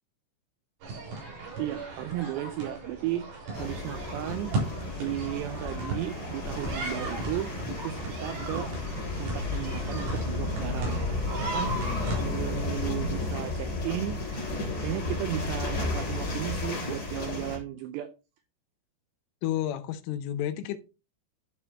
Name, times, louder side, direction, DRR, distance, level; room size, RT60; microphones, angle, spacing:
sound 1, 0.8-12.2, right 3 dB, 65° right, 6.2 m, -36 dB
voice 1, 1.6-4.5 5.0-7.5 7.8-8.7 9.2-11.8 12.1-14.2 14.8-18.1, right 13 dB, 90° right, 2.5 m, -35 dB
sound 2, 3.5-17.6, left 2 dB, 30° left, 3.5 m, -33 dB
voice 2, 11.7-12.2 19.4-20.8, left 12 dB, 80° left, 3.2 m, -32 dB
12.0 x 6.4 x 2.8 m
omnidirectional pair, 5.7 m